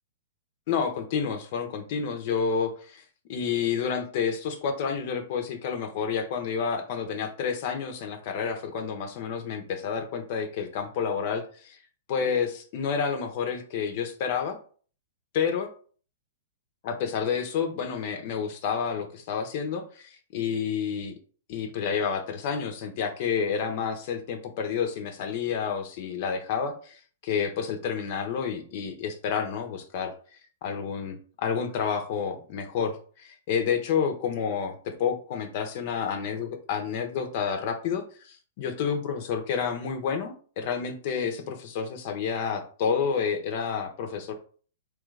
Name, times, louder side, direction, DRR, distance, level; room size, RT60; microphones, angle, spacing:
voice 1, 0.7-3.0 3.3-11.8 12.1-14.6 15.3-15.7 16.8-21.1 21.5-30.1 30.6-44.3, left 6 dB, 50° left, 7 dB, 0.7 m, -29 dB
3.2 x 2.4 x 3.2 m, 0.41 s
hypercardioid pair, 125°, 0 cm